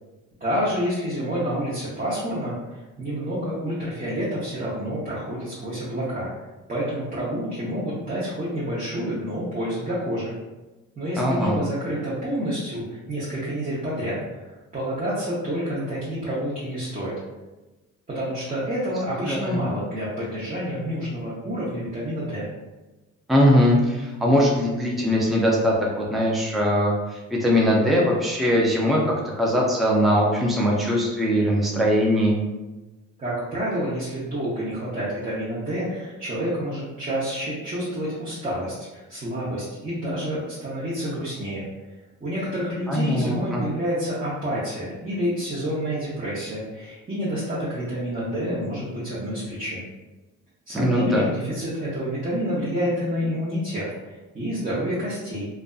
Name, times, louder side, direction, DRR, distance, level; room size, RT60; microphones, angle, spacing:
voice 1, 0.4-6.3 6.7-10.3 11.0-17.1 18.1-22.5 33.2-41.6 42.2-49.8 50.7-55.5, equal, 25° right, -9 dB, 0.8 m, -28 dB
voice 2, 11.1-11.5 19.2-19.6 23.3-32.4 42.9-43.7 50.7-51.3, equal, ahead, -3 dB, 0.5 m, -21 dB
2.5 x 2.3 x 2.3 m, 1.1 s
cardioid pair, 90°, 30 cm